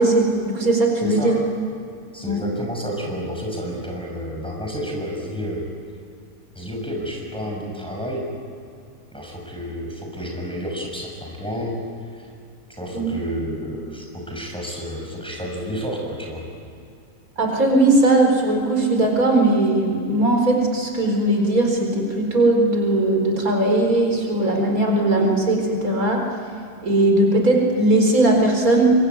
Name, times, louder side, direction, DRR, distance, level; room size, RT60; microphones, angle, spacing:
voice 1, 0.0-1.4 2.2-2.4 12.9-13.2 17.4-26.3 26.8-28.9, right 2 dB, 75° right, 1 dB, 4.9 m, -19 dB
voice 2, 1.0-1.4 2.1-5.6 6.5-8.2 9.1-11.8 12.1-12.3 12.7-16.4, equal, 5° left, -1 dB, 6.4 m, -30 dB
25.5 x 24.0 x 9.6 m, 2.5 s
omnidirectional pair, 1.5 m